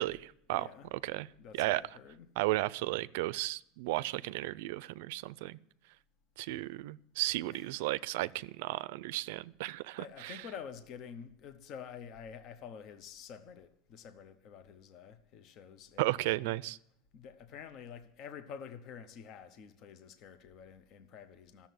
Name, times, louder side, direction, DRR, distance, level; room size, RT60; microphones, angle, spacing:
voice 1, 0.0-1.3 1.5-1.8 2.4-5.6 6.4-10.4 16.0-16.8, right 18 dB, 75° right, 0.4 m, -34 dB
voice 2, 0.5-0.9 1.4-2.3 7.5-7.7 10.0-16.5 17.1-21.7, left 7 dB, 45° left, 0.9 m, -49 dB
13.5 x 7.1 x 9.3 m
supercardioid pair, 145°, 0 cm